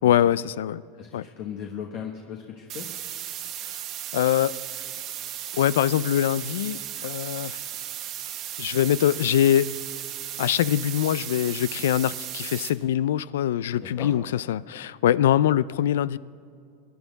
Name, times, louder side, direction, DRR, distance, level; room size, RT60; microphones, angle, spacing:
voice 1, 0.0-0.8 1.1-1.3 3.6-3.7 4.1-4.5 5.5-7.6 8.6-9.7 10.4-16.2, left 11 dB, 90° left, 0.3 m, -23 dB
voice 2, 1.0-2.9 13.7-14.1, left 8 dB, 50° left, 1.3 m, -37 dB
sound 1, 2.7-12.7, right 11 dB, 45° right, 1.1 m, -35 dB
25.0 x 10.5 x 4.0 m
supercardioid pair, 135°, 0 cm